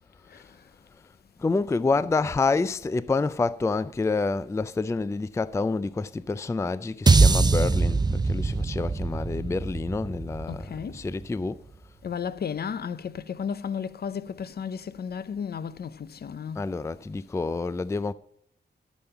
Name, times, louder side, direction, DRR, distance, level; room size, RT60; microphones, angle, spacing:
voice 1, 1.4-11.6 16.6-18.1, left 3 dB, 15° left, 0.3 m, -28 dB
sound 1, 7.1-11.4, right 3 dB, 25° right, 0.6 m, -23 dB
voice 2, 10.5-10.9 12.0-16.6, left 7 dB, 65° left, 0.7 m, -33 dB
12.0 x 7.3 x 5.7 m
wide cardioid pair, 125°, 18 cm